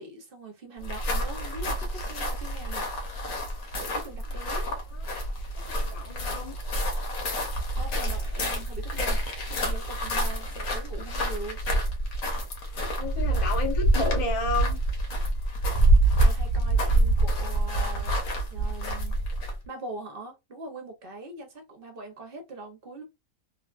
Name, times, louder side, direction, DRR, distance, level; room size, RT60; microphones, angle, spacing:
voice 1, 0.0-2.9 3.8-4.7 7.8-9.2 9.5-11.6 16.2-18.2 18.5-19.2 19.7-23.0, right 2 dB, 50° right, 0.7 m, -42 dB
sound 1, 0.8-19.7, right 1 dB, 75° left, 1.3 m, -27 dB
voice 2, 5.7-6.5 12.9-14.8, left 3 dB, 35° left, 0.6 m, -31 dB
3.0 x 2.3 x 2.3 m
omnidirectional pair, 1.4 m